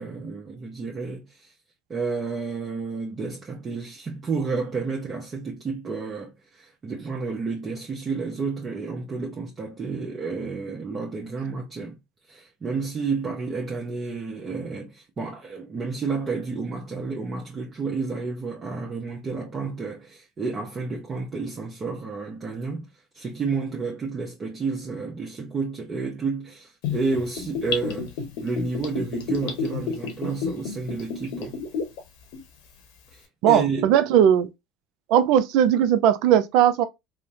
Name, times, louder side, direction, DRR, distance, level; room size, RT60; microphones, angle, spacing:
voice 1, 0.0-1.5 1.9-12.0 12.3-28.1 28.4-31.6 33.1-33.9, right 4 dB, 30° right, 0.8 m, -31 dB
Gurgling / Bathtub (filling or washing), 26.8-32.0 32.3-32.4, left 6 dB, 70° left, 0.8 m, -30 dB
voice 2, 33.4-34.5 35.1-36.9, right 10 dB, 65° right, 0.4 m, -18 dB
3.2 x 2.1 x 2.6 m
hypercardioid pair, 85°, 0 cm